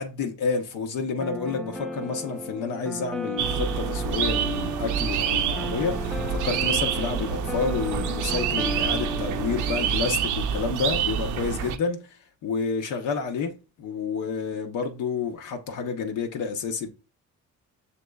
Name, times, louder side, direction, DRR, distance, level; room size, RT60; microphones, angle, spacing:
voice 1, 0.0-16.9, left 5 dB, 90° left, 0.7 m, -29 dB
sound 1, 1.2-9.9, equal, ahead, 0.3 m, -34 dB
sound 2, 3.4-11.8, right 8 dB, 80° right, 0.5 m, -27 dB
6.5 x 2.9 x 2.2 m
cardioid pair, 90°, 30 cm